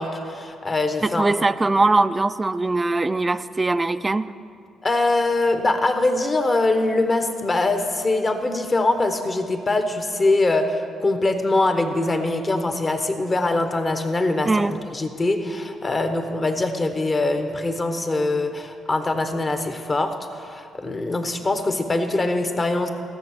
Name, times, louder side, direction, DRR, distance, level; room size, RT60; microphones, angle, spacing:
voice 1, 0.0-1.3 4.8-22.9, left 2 dB, 30° left, 7 dB, 1.2 m, -23 dB
voice 2, 1.0-4.2 14.5-14.7, right 2 dB, 20° right, 13 dB, 0.4 m, -21 dB
15.0 x 7.0 x 6.6 m, 2.4 s
cardioid pair, 90°, 0 cm